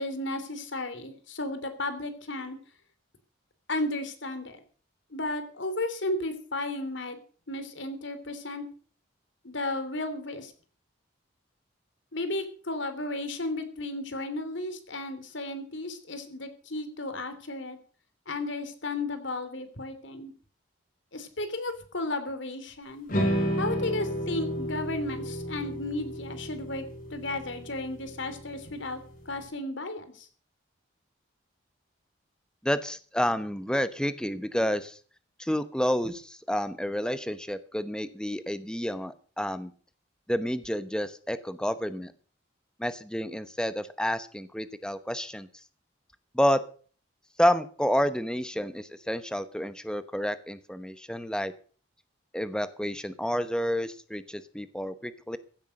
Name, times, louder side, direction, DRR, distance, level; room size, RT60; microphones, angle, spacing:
voice 1, 0.0-2.6 3.7-4.6 5.1-7.2 7.5-8.6 9.4-10.5 12.1-17.8 18.3-20.3 21.1-23.1 23.6-26.9 27.1-30.3, left 2 dB, 70° left, 10 dB, 2.9 m, -34 dB
sound 1, 23.1-29.4, equal, 45° left, 5.0 m, -32 dB
voice 2, 32.6-35.0 35.4-39.7 40.3-42.1 42.8-45.5 46.3-46.6 47.4-51.5 52.3-55.4, equal, 5° left, 12 dB, 0.9 m, -29 dB
16.0 x 9.1 x 6.5 m, 0.42 s
head